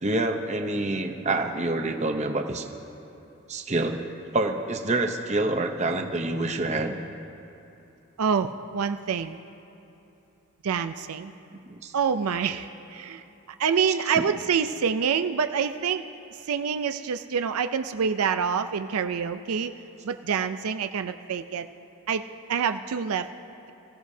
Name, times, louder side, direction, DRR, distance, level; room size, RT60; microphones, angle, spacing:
voice 1, 0.0-2.7 3.5-7.0 11.7-11.9, right 2 dB, 30° right, 4 dB, 0.8 m, -27 dB
voice 2, 8.2-9.4 10.6-11.3 11.9-13.2 13.6-16.0 16.5-19.7 20.0-21.7 22.1-23.3, right 6 dB, 80° right, 9 dB, 0.4 m, -26 dB
25.0 x 15.5 x 2.8 m, 3.0 s
head